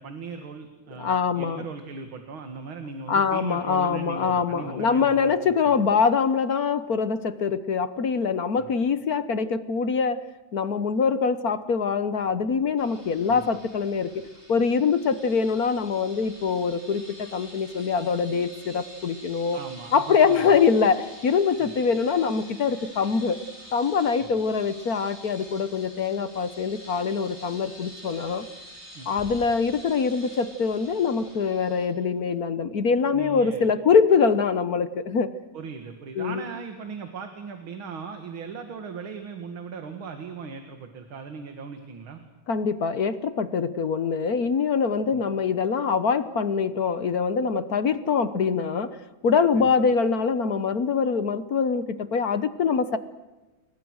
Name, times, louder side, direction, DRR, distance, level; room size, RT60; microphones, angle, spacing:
voice 1, 0.0-5.7 8.6-8.7 13.3-13.5 19.5-20.6 21.6-21.7 24.2-24.3 28.9-29.1 33.1-33.7 35.5-42.2 45.1-45.2 49.5-49.6, right 5 dB, 80° right, 6 dB, 2.8 m, -38 dB
voice 2, 0.9-1.7 3.1-14.2 14.5-19.6 19.9-23.4 23.7-28.4 29.1-35.3 36.2-36.4 42.5-49.0 49.2-53.0, left 5 dB, 55° left, 13 dB, 1.3 m, -24 dB
sound 1, 12.8-31.9, equal, 15° right, 7.5 m, -47 dB
29.5 x 22.5 x 6.4 m, 1.2 s
omnidirectional pair, 2.2 m